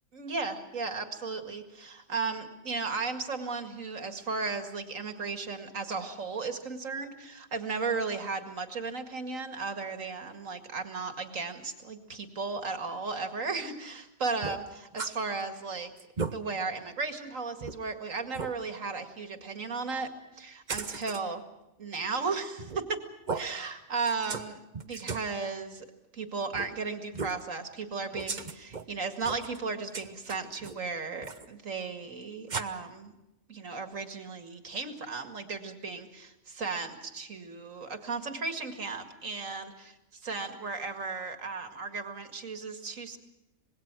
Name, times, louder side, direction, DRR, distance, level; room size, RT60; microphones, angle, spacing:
voice 1, 0.1-15.9 16.3-21.4 21.8-23.0 23.3-25.9 26.1-33.1 33.5-39.7 40.2-43.2, right 4 dB, 70° right, 7 dB, 2.4 m, -35 dB
sound 1, 14.4-15.1 15.5-15.6 16.0-16.3 16.9-17.0 17.6-17.7 18.3-18.5 20.7-21.2 22.6-22.9 23.3-23.5 24.1-24.5 24.7-25.3 26.5-26.7 27.1-27.4 28.1-28.9 29.2-29.6 29.9-30.8 31.2-31.5 32.5-32.6, right 4 dB, 35° right, 1.1 m, -36 dB
26.0 x 20.5 x 6.1 m, 0.95 s
omnidirectional pair, 1.4 m